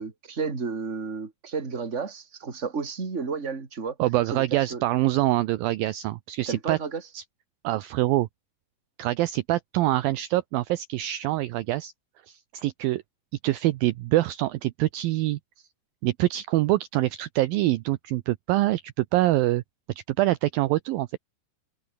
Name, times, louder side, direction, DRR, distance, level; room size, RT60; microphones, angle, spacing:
voice 1, 0.0-3.9 4.3-4.4 4.7-4.8 6.5-7.0, right 5 dB, 20° right, 2.7 m, -32 dB
voice 2, 4.0-6.8 7.1-7.2 7.6-8.3 9.0-11.9 12.3-13.0 13.4-15.4 16.0-19.6 20.1-21.2, right 16 dB, 75° right, 2.4 m, -25 dB
omnidirectional pair, 4.6 m